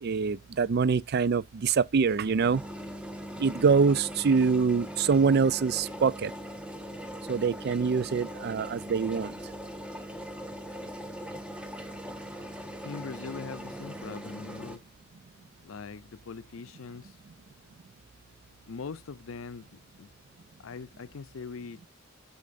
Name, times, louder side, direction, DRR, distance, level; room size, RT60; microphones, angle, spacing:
voice 1, 0.0-2.6 3.4-6.3 7.3-9.3, right 5 dB, 50° right, 0.4 m, -25 dB
sound 1, 2.2-14.8, equal, 5° right, 1.1 m, -40 dB
voice 2, 12.8-14.8 15.6-17.1 18.7-19.7 20.0-20.1 20.6-21.8, left 5 dB, 75° left, 0.5 m, -41 dB
8.4 x 6.4 x 2.5 m
head